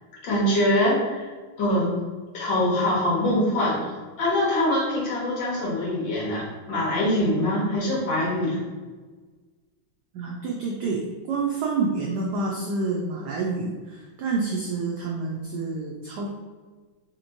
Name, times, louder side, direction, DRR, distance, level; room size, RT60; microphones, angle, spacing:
voice 1, 0.2-1.3 1.6-2.0 2.3-8.6, left 1 dB, 65° left, -5 dB, 1.9 m, -23 dB
voice 2, 10.1-11.0 11.3-16.3, right 4 dB, 75° right, -2 dB, 0.9 m, -28 dB
4.3 x 2.9 x 2.6 m, 1.4 s
omnidirectional pair, 2.2 m